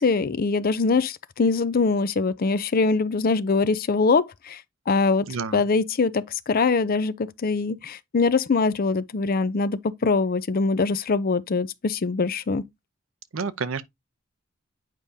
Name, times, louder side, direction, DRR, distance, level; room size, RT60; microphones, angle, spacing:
voice 1, 0.0-4.6 4.9-5.3 5.5-12.6, left 4 dB, 45° left, 0.5 m, -23 dB
voice 2, 5.3-5.6 13.3-13.8, right 5 dB, 70° right, 0.7 m, -29 dB
9.0 x 5.0 x 2.7 m
head